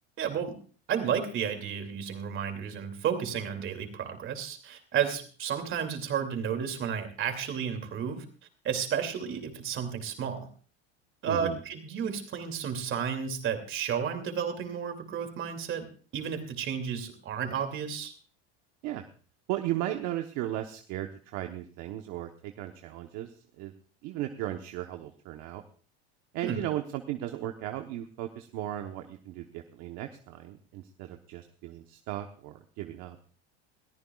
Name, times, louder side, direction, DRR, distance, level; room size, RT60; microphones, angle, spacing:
voice 1, 0.2-0.6 0.9-8.2 8.6-10.5 11.2-15.9 16.1-18.1 26.4-26.6, right 7 dB, 40° right, 7 dB, 2.6 m, -32 dB
voice 2, 11.2-11.6 18.8-19.0 19.5-23.7 24.0-25.6 26.3-33.2, right 13 dB, 60° right, 5 dB, 1.1 m, -36 dB
22.0 x 14.0 x 2.4 m, 0.40 s
supercardioid pair, 130°, 31 cm